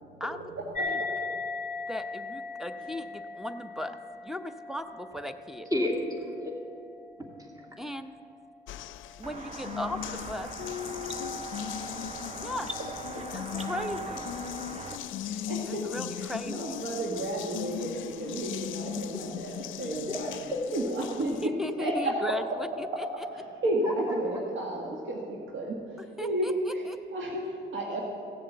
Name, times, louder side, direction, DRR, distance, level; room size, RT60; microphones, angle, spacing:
voice 1, 0.0-0.5 0.8-0.9 5.7-6.5 7.2-7.5 13.1-13.2 14.8-15.5 19.1-19.3 19.7-20.7 23.8-24.4, left 1 dB, 15° right, 1 dB, 2.4 m, -35 dB
voice 2, 0.6-1.3 14.7-14.9 15.2-15.9 16.1-20.3 20.7-21.5 21.8-22.3 22.9-28.0, right 1 dB, 75° right, -1 dB, 1.8 m, -32 dB
sound 1, 0.7-7.6, left 3 dB, 40° left, 1.1 m, -38 dB
voice 3, 1.9-4.0 4.2-5.7 7.8-8.1 9.2-10.5 12.3-12.7 13.3-14.2 15.7-16.8 21.4-23.1 26.2-27.0, left 1 dB, ahead, 9 dB, 0.8 m, -37 dB
Water tap faucet, 8.7-21.5, left 11 dB, 80° left, 0.5 m, -38 dB
sound 2, 9.2-15.0, right 3 dB, 35° right, 1.1 m, -39 dB
16.0 x 7.4 x 8.1 m, 2.5 s
cardioid pair, 90°, 20 cm